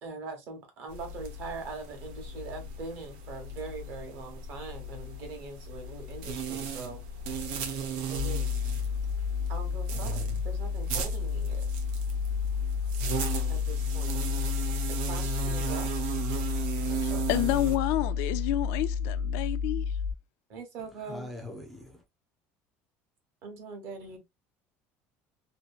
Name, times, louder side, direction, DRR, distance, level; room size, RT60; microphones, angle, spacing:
voice 1, 0.0-7.0 8.1-8.6 9.5-11.6 13.5-14.2 14.9-16.0 16.9-17.5 20.5-21.3 23.4-24.2, right 4 dB, 45° right, 1.1 m, -42 dB
sound 1, 0.9-17.8, right 5 dB, 90° right, 0.8 m, -36 dB
sound 2, 8.1-20.1, left 6 dB, 25° right, 0.9 m, -31 dB
voice 2, 16.3-16.9 21.0-22.0, left 1 dB, ahead, 0.5 m, -44 dB
voice 3, 17.0-19.8, left 14 dB, 65° left, 0.4 m, -29 dB
2.8 x 2.7 x 2.3 m
cardioid pair, 180°, 5 cm